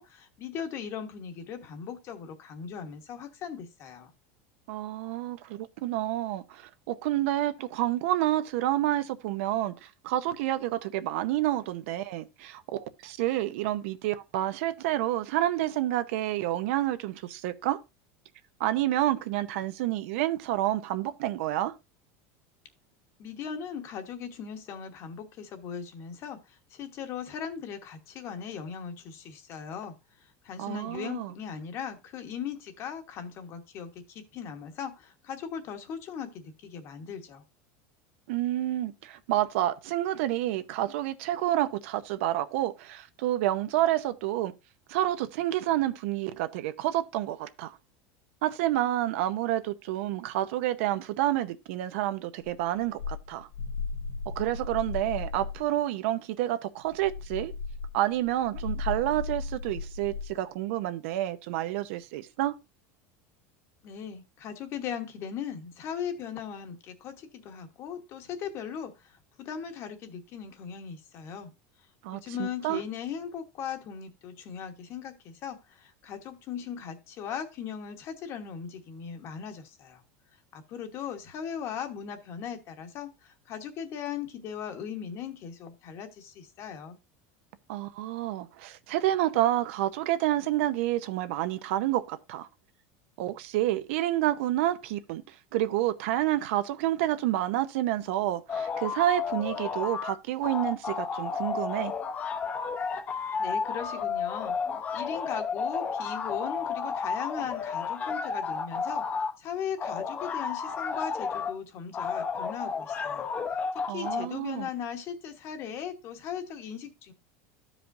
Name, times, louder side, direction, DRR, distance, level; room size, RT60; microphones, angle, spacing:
voice 1, 0.0-4.1 23.2-37.4 63.8-71.5 72.1-80.0 80.5-87.0 103.4-104.6 104.9-113.3 113.7-117.1, left 7 dB, 40° left, 1.1 m, -38 dB
voice 2, 4.7-17.8 18.6-21.7 30.6-31.3 38.3-44.5 44.9-47.8 48.4-53.5 54.3-57.5 57.9-62.6 72.0-72.8 87.7-92.5 93.2-101.9 113.9-114.7, right 14 dB, 70° right, 0.7 m, -29 dB
sound 1, 52.4-55.7 56.9-60.3, left 4 dB, 85° left, 1.6 m, -36 dB
sound 2, 98.5-100.1 100.4-109.3 109.8-111.5 111.9-114.3, left 5 dB, 25° left, 0.7 m, -32 dB
13.5 x 5.0 x 2.6 m
supercardioid pair, 160°, 7 cm